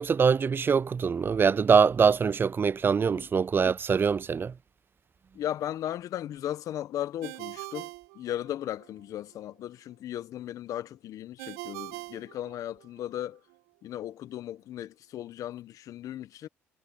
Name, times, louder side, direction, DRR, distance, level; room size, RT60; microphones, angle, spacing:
voice 1, 0.0-4.5, right 6 dB, 35° right, 0.5 m, -23 dB
voice 2, 5.3-7.9 8.1-13.4 13.8-16.5, left 12 dB, 65° left, 1.4 m, -36 dB
Ringtone, 7.2-8.9 11.4-13.1, right 24 dB, 80° right, 3.1 m, -42 dB
hypercardioid pair, 55°, 6 cm